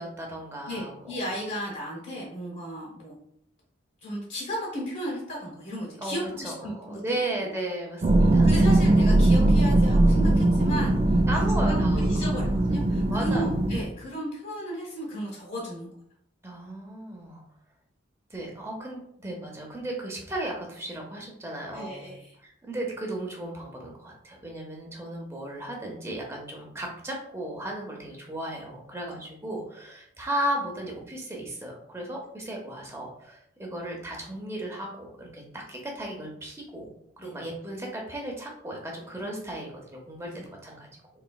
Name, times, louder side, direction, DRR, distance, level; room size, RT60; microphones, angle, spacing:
voice 1, 0.0-1.1 6.0-6.2 6.4-8.7 11.3-12.2 13.1-13.6 16.4-17.4 18.3-22.1 22.4-36.9 37.2-40.3 40.6-40.9, right 1 dB, 15° right, -1 dB, 0.7 m, -35 dB
voice 2, 0.7-3.1 4.0-7.2 8.2-11.4 11.7-15.9 21.7-22.4 37.2-37.3 40.2-40.5, equal, 55° left, -4 dB, 0.9 m, -35 dB
sound 1, 8.0-13.8, right 1 dB, 30° right, 0.3 m, -20 dB
4.0 x 3.0 x 2.3 m, 0.71 s
head